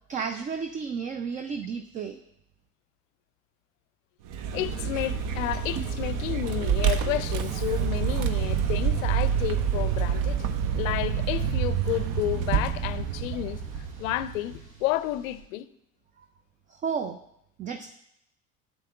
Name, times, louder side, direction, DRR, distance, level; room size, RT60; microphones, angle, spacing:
voice 1, 0.1-2.2 16.2-16.3 16.7-17.2 17.6-17.9, right 6 dB, 20° right, 0.3 m, -32 dB
Vehicle, 4.3-14.6, right 8 dB, 50° right, 0.7 m, -27 dB
voice 2, 4.5-10.5 10.7-13.6 14.0-15.7, left 15 dB, 65° left, 0.5 m, -31 dB
sound 1, 7.1-15.4, right 1 dB, 65° right, 3.3 m, -50 dB
12.5 x 7.8 x 2.3 m
figure-of-eight pair, 65°, 43 cm